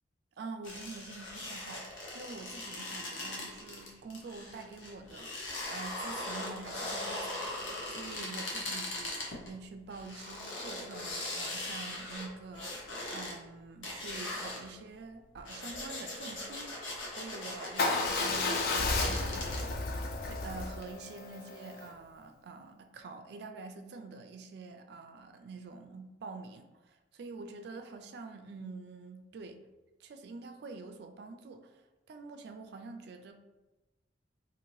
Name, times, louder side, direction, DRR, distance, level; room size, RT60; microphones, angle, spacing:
voice 1, 0.4-20.0 20.2-29.6 30.0-33.3, right 3 dB, 60° right, 6 dB, 0.3 m, -46 dB
sound 1, 0.6-9.5 9.9-13.3 13.8-14.7 15.3-19.6, left 2 dB, 85° left, 0.8 m, -40 dB
Motorcycle / Engine starting / Idling, 17.8-21.9, left 3 dB, 50° left, 0.4 m, -32 dB
2.7 x 2.5 x 3.0 m, 1.1 s
head